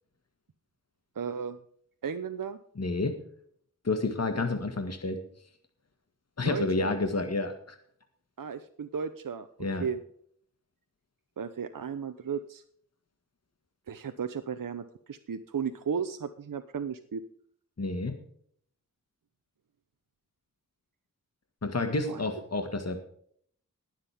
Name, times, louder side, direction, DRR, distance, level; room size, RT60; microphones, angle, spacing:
voice 1, 1.1-1.6 2.0-2.6 6.4-6.9 8.4-9.5 9.8-10.0 11.4-12.6 13.9-17.2 22.1-22.2, right 6 dB, 70° right, 8 dB, 0.8 m, -34 dB
voice 2, 2.8-3.2 3.8-5.2 6.4-7.8 9.6-9.8 17.8-18.2 21.6-23.0, left 3 dB, 50° left, 6 dB, 1.8 m, -29 dB
21.5 x 7.5 x 3.5 m, 0.63 s
wide cardioid pair, 75°, 34 cm